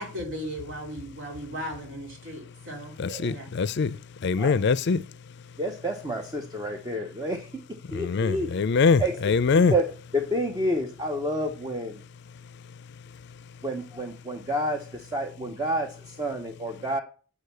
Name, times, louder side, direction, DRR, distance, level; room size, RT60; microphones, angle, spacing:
voice 1, 0.0-3.0 3.2-3.5, equal, 60° right, 3.1 m, -36 dB
voice 2, 3.0-3.9 4.2-5.0 7.9-9.7, left 5 dB, 55° left, 0.4 m, -23 dB
voice 3, 5.6-8.6 9.0-9.1 9.7-9.8 10.1-12.0 13.6-17.0, right 1 dB, 20° right, 1.0 m, -29 dB
8.3 x 6.5 x 6.8 m
head